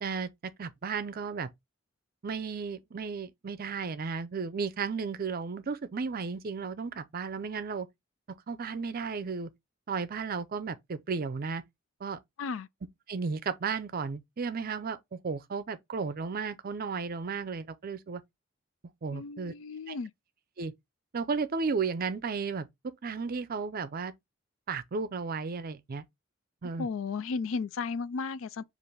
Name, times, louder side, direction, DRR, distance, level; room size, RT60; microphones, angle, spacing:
voice 1, 0.6-1.5 2.2-7.9 8.5-9.5 9.9-11.6 12.0-12.2 13.1-18.2 19.0-19.5 19.9-20.0 20.6-20.7 21.1-24.1 24.7-26.0 26.6-26.9, right 5 dB, 45° right, 0.5 m, -34 dB
voice 2, 12.4-12.7 19.1-20.1 26.8-28.6, left 4 dB, 70° left, 0.4 m, -34 dB
5.4 x 2.5 x 3.1 m
head